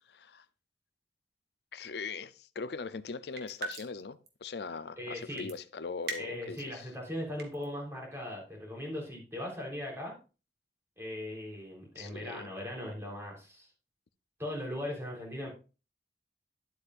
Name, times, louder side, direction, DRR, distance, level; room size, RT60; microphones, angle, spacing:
voice 1, 0.1-0.5 1.7-6.9 11.9-12.5, left 4 dB, 65° left, 0.5 m, -41 dB
sound 1, 3.4-4.0 4.3-4.4 5.4-5.6 6.0-6.6 7.2-7.7, right 3 dB, 60° right, 1.6 m, -39 dB
voice 2, 5.0-5.5 6.2-10.1 11.0-13.7 14.4-15.5, left 1 dB, 15° right, 3.7 m, -39 dB
10.5 x 8.1 x 2.5 m
head